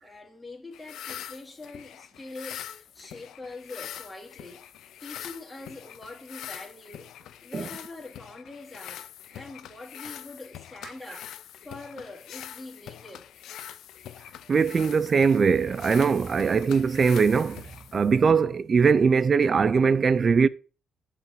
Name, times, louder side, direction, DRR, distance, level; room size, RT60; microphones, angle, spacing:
voice 1, 0.0-4.7 5.0-7.1 7.4-11.3 11.6-13.3, left 2 dB, 15° left, 3.1 m, -43 dB
sound 1, 0.7-18.3, left 11 dB, 80° left, 0.6 m, -44 dB
voice 2, 14.5-17.6 17.9-20.5, right 5 dB, 40° right, 0.5 m, -21 dB
7.9 x 5.1 x 5.5 m
cardioid pair, 90°, 0 cm